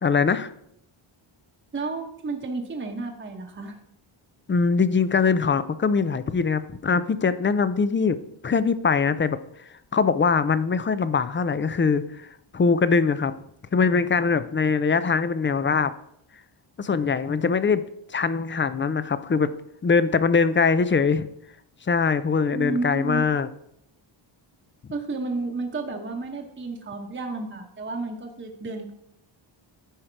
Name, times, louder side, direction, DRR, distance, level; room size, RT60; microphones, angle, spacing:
voice 1, 0.0-0.5 4.5-8.2 8.4-12.3 12.5-13.3 13.7-15.9 16.8-17.8 18.1-19.5 19.8-21.3 21.9-23.5, left 5 dB, 25° left, 14 dB, 0.4 m, -22 dB
voice 2, 1.7-3.7 22.5-23.2 24.9-28.9, right 3 dB, 25° right, 2 dB, 1.0 m, -31 dB
10.0 x 5.0 x 4.5 m, 0.74 s
wide cardioid pair, 110°, 49 cm